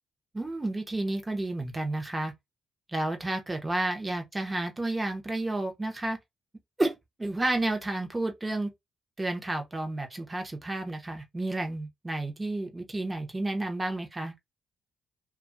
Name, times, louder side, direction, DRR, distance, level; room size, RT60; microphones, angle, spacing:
voice 1, 0.3-2.3 2.9-6.2 6.8-8.7 9.2-14.3, right 2 dB, 15° right, 0.8 m, -31 dB
2.7 x 2.3 x 2.6 m
cardioid pair, 90°, 0 cm